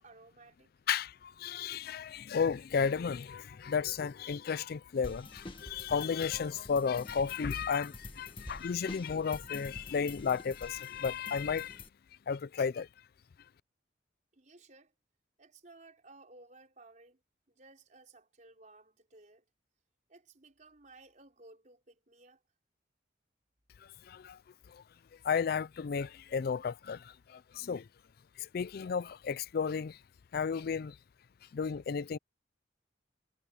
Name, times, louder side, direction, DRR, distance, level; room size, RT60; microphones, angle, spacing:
voice 1, 0.0-0.7 14.3-14.9 15.4-17.2 17.5-19.4 20.1-22.4, right 2 dB, 45° right, 4.4 m, -57 dB
voice 2, 0.9-11.8 12.3-12.9 23.8-24.4 24.7-24.8 25.2-27.9 28.4-30.0 30.3-31.0 31.5-32.2, left 6 dB, 55° left, 0.4 m, -33 dB
sound 1, 5.0-11.9, left 2 dB, 30° left, 1.8 m, -48 dB
head